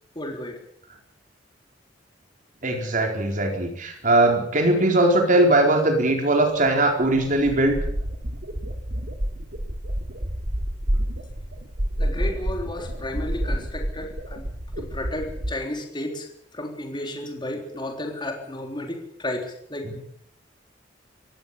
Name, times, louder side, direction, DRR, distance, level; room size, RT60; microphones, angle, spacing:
voice 1, 0.2-0.6 12.0-14.5 14.8-19.9, left 1 dB, 25° left, 3 dB, 3.7 m, -33 dB
voice 2, 2.6-7.8, right 1 dB, 45° right, 3 dB, 4.2 m, -20 dB
sound 1, 6.7-6.8 7.0-15.5, equal, 65° right, 2.7 m, -29 dB
23.5 x 17.0 x 7.1 m, 0.68 s
head